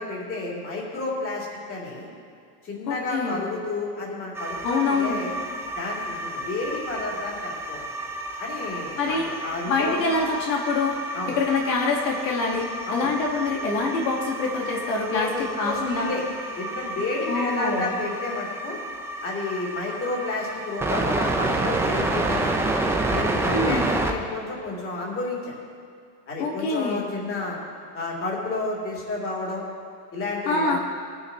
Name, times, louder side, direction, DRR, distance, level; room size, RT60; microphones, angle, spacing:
voice 1, 0.0-2.1 2.6-5.3 5.7-7.8 8.4-10.2 11.1-11.3 12.9-13.1 15.1-16.2 16.6-18.8 19.2-22.6 23.1-25.6 26.3-27.6 27.9-29.6 30.1-30.8, left 2 dB, 25° left, -4 dB, 3.4 m, -31 dB
voice 2, 2.9-3.4 4.6-5.2 9.0-9.3 9.7-11.0 11.3-16.1 17.3-17.9 23.5-23.9 26.4-27.0 30.5-30.8, left 3 dB, 90° left, -1 dB, 2.3 m, -25 dB
sound 1, 4.4-24.1, right 2 dB, 5° right, 0.6 m, -30 dB
19.0 x 10.0 x 3.3 m, 2.4 s
supercardioid pair, 130°, 48 cm